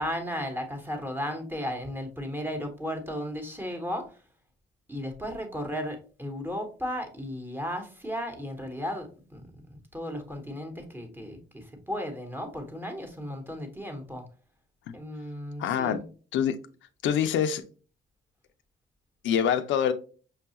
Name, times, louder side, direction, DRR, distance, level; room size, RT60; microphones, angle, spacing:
voice 1, 0.0-4.1 4.9-14.2 14.9-16.0, equal, 10° right, 1.0 m, -35 dB
voice 2, 15.6-16.0 16.3-16.6 17.0-17.6 19.2-19.9, left 8 dB, 75° left, 0.4 m, -25 dB
5.5 x 2.3 x 2.8 m
cardioid pair, 90°, 20 cm